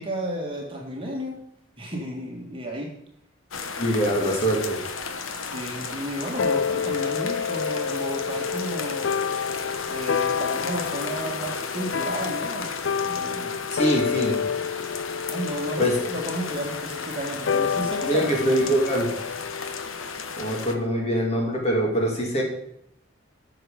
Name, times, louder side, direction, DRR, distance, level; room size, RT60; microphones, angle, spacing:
voice 1, 0.0-1.4 1.8-2.9 5.4-9.1 9.9-12.7 13.0-13.6 15.3-18.6, right 1 dB, 25° right, -1 dB, 1.8 m, -33 dB
sound 1, 3.5-20.7, left 5 dB, 90° left, 1.1 m, -34 dB
voice 2, 3.8-4.8 13.7-14.3 15.8-15.9 18.1-19.1 20.4-22.4, right 1 dB, 30° left, -1 dB, 2.6 m, -23 dB
sound 2, 6.4-21.1, left 6 dB, 65° left, 0.4 m, -29 dB
13.5 x 6.5 x 5.0 m, 0.72 s
head